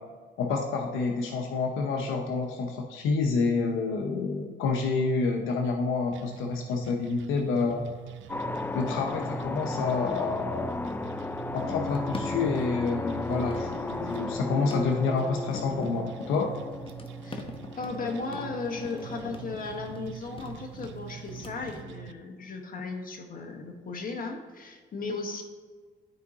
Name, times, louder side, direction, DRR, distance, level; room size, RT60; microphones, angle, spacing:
voice 1, 0.4-7.9 8.7-10.8 11.5-16.5, left 4 dB, 85° left, 2 dB, 0.8 m, -28 dB
sound 1, 6.1-22.1, right 11 dB, 75° right, 0.5 m, -44 dB
sound 2, 6.3-21.8, left 3 dB, 25° left, 0.9 m, -47 dB
sound 3, 8.3-19.7, left 3 dB, 10° left, 0.3 m, -35 dB
voice 2, 17.7-25.4, left 3 dB, 45° left, 3 dB, 1.4 m, -36 dB
12.0 x 4.6 x 2.9 m, 1.5 s
cardioid pair, 90°, 20 cm